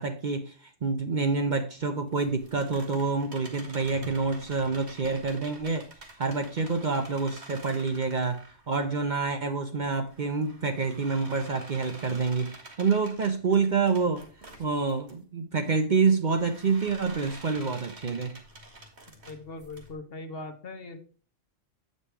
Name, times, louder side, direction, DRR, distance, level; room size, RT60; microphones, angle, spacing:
voice 1, 0.0-5.9 6.2-14.2 14.6-18.4, right 4 dB, 45° right, 0.8 m, -27 dB
sound 1, 2.1-9.3 9.8-15.1 16.3-19.9, right 2 dB, 65° right, 2.2 m, -48 dB
voice 2, 19.3-21.0, left 2 dB, 55° left, 1.3 m, -40 dB
8.5 x 5.4 x 4.6 m
omnidirectional pair, 1.2 m